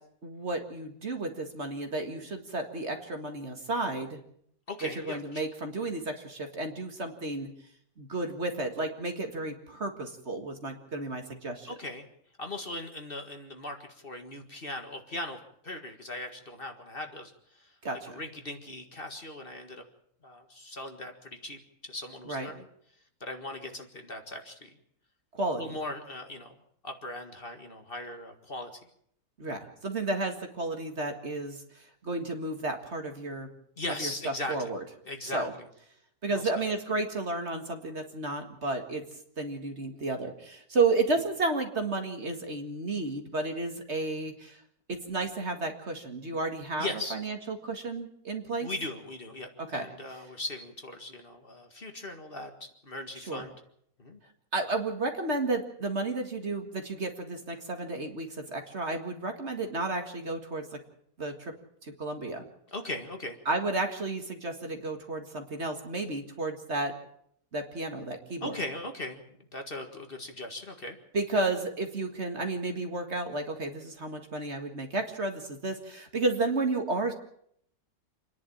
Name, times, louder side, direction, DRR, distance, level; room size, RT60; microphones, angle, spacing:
voice 1, 0.2-4.2 5.0-7.5 8.0-11.7 17.8-18.2 22.3-22.5 25.3-25.6 29.4-31.6 32.0-33.5 34.0-34.8 35.3-35.5 36.2-39.0 39.4-44.6 44.9-48.7 49.7-49.9 53.2-53.5 54.5-60.8 61.2-61.5 61.8-62.5 63.5-66.9 67.5-68.6 71.1-77.1, right 2 dB, 45° right, 5 dB, 2.1 m, -32 dB
voice 2, 4.7-5.4 11.7-12.1 12.4-17.7 18.1-19.8 20.2-22.7 23.2-24.8 25.6-26.5 26.8-28.7 33.8-34.7 35.1-35.7 36.3-36.6 46.8-47.2 48.6-53.5 54.0-54.2 62.7-63.4 68.4-71.0, left 2 dB, 35° left, 5 dB, 2.0 m, -39 dB
27.5 x 10.5 x 8.9 m, 0.70 s
omnidirectional pair, 1.6 m